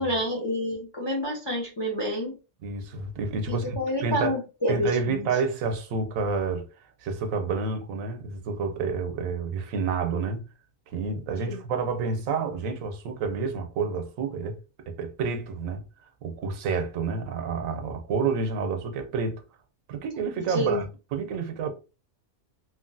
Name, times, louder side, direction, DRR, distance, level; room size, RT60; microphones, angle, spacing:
voice 1, 0.0-2.3 3.5-5.3 11.5-11.6 20.5-20.8, equal, 40° left, 0.4 m, -28 dB
voice 2, 2.6-4.3 4.7-6.7 7.0-10.4 10.9-14.6 14.9-15.8 16.2-19.4 19.9-21.7, right 4 dB, 85° right, 1.0 m, -29 dB
3.0 x 2.5 x 2.5 m
omnidirectional pair, 1.3 m